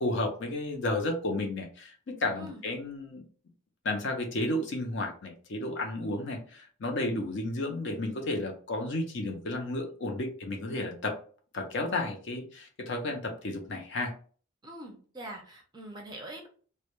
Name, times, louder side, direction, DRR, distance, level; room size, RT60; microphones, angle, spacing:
voice 1, 0.0-3.2 3.8-11.1 11.5-14.1, left 2 dB, 60° left, 3 dB, 0.5 m, -32 dB
voice 2, 14.6-16.5, right 1 dB, 20° right, 1 dB, 0.5 m, -43 dB
2.2 x 2.1 x 2.9 m, 0.42 s
head